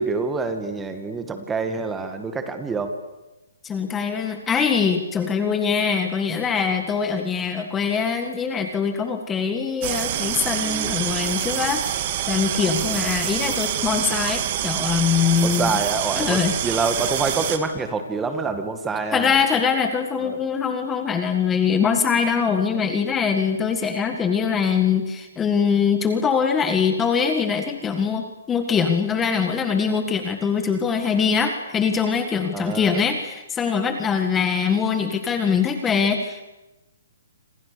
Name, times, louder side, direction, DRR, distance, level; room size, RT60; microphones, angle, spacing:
voice 1, 0.0-2.9 12.8-13.1 15.4-19.4 20.2-20.4 32.5-33.0, right 4 dB, 10° right, 7 dB, 2.1 m, -26 dB
voice 2, 3.6-11.8 12.3-15.7 16.2-16.5 19.1-36.4, left 6 dB, 10° left, 6 dB, 1.7 m, -23 dB
sound 1, 9.8-17.6, right 11 dB, 35° right, 2.4 m, -26 dB
28.0 x 27.0 x 6.9 m, 1.0 s
hypercardioid pair, 160°, 0 cm